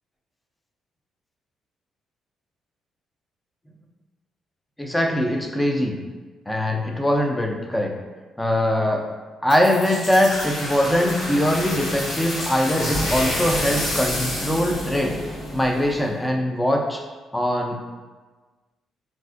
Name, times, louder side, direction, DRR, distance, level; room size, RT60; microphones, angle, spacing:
voice 1, 4.8-6.0 6.5-7.9 8.4-9.1 9.4-15.2 15.5-17.0 17.3-17.8, left 1 dB, 10° left, 2 dB, 0.4 m, -22 dB
sound 1, 9.5-16.1, left 1 dB, 55° left, 1.3 m, -28 dB
4.1 x 2.4 x 2.4 m, 1.3 s
cardioid pair, 90°, 0 cm